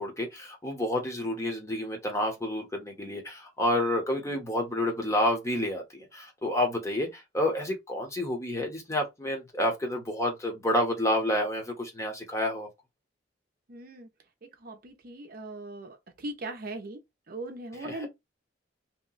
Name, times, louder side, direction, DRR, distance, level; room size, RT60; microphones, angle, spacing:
voice 1, 0.0-12.7 17.8-18.1, left 1 dB, 15° left, 0.8 m, -29 dB
voice 2, 13.7-14.1 14.6-17.0 17.3-18.1, right 2 dB, 50° right, 0.6 m, -39 dB
2.9 x 2.2 x 3.8 m
head